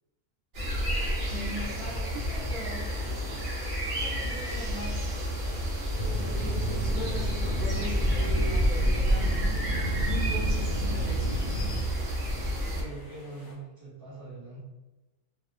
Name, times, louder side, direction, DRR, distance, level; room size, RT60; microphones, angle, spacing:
sound 1, 0.5-12.8, equal, 55° right, 0.7 m, -29 dB
sound 2, 0.9-13.5, left 1 dB, 25° left, 0.5 m, -51 dB
voice 1, 1.3-2.8 3.9-5.1 6.1-9.6 10.0-11.6, equal, 85° right, -7 dB, 0.4 m, -40 dB
sound 3, 5.9-11.8, equal, 75° left, 1.1 m, -33 dB
voice 2, 12.6-14.6, right 2 dB, 25° right, -8 dB, 0.5 m, -43 dB
2.7 x 2.1 x 2.4 m, 1.1 s
omnidirectional pair, 1.6 m